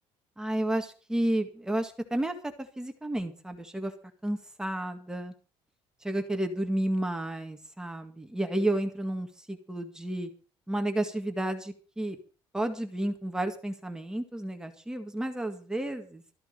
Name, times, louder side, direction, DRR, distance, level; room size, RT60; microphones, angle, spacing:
voice 1, 0.4-3.9 4.2-5.3 6.0-10.3 10.7-12.2 12.5-16.2, right 1 dB, 5° right, 5 dB, 1.8 m, -31 dB
14.0 x 12.0 x 5.3 m, 0.37 s
cardioid pair, 145°, 10 cm